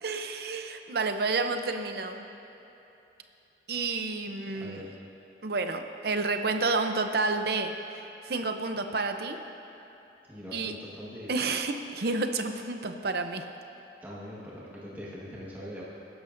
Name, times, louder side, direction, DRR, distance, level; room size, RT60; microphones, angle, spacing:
voice 1, 0.0-2.3 3.7-4.9 5.4-9.4 10.5-10.7 11.3-13.5, right 3 dB, 55° right, 6 dB, 0.7 m, -30 dB
voice 2, 4.5-4.9 10.3-11.4 14.0-15.8, equal, 10° right, -7 dB, 1.5 m, -42 dB
21.0 x 11.0 x 2.6 m, 3.0 s
head